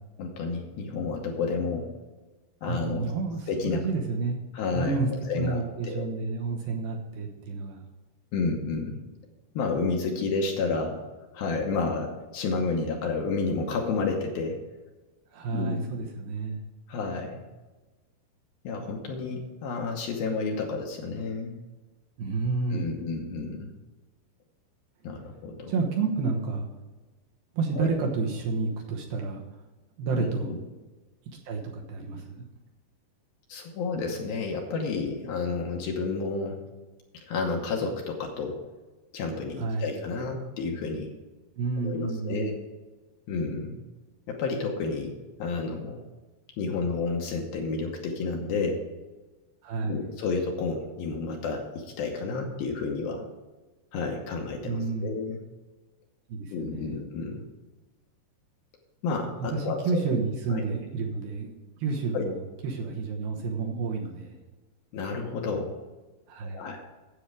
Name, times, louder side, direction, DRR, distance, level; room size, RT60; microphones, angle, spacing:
voice 1, 0.2-1.9 2.6-3.1 3.5-3.9 4.5-6.0 8.3-9.0 9.5-11.0 11.3-14.6 15.5-15.9 16.9-17.4 18.6-21.5 22.7-23.7 25.0-25.7 27.8-27.9 30.2-30.6 33.5-36.6 37.1-38.6 39.1-41.1 41.8-42.5 43.3-43.8 44.3-45.1 45.4-46.0 46.6-48.9 49.8-53.3 53.9-55.4 56.5-57.4 59.0-60.2 60.5-60.6 62.1-62.2 64.9-65.8 66.4-66.8, left 4 dB, 70° left, 1 dB, 2.5 m, -30 dB
voice 2, 2.6-4.4 4.7-5.1 5.3-7.8 15.3-16.6 22.2-23.0 25.7-26.7 27.5-29.4 30.0-30.5 31.5-32.5 39.6-39.9 41.6-42.5 49.6-50.1 54.6-55.2 56.3-57.0 59.5-64.4 66.3-66.7, right 4 dB, 70° right, 0 dB, 2.6 m, -30 dB
10.0 x 8.2 x 4.8 m, 1.2 s
omnidirectional pair, 5.0 m